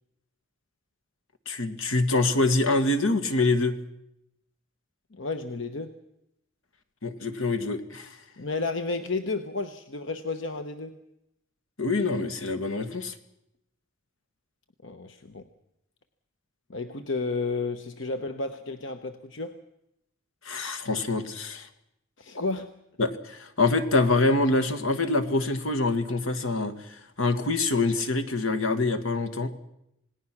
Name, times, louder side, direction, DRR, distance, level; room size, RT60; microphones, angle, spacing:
voice 1, 1.5-3.8 7.0-8.1 11.8-13.1 20.4-21.7 23.0-29.5, left 2 dB, 80° left, 9 dB, 1.8 m, -25 dB
voice 2, 5.1-6.0 8.4-11.0 14.8-15.5 16.7-19.6 22.2-22.7, left 3 dB, 60° left, 8 dB, 1.1 m, -32 dB
27.5 x 19.0 x 6.1 m, 0.81 s
head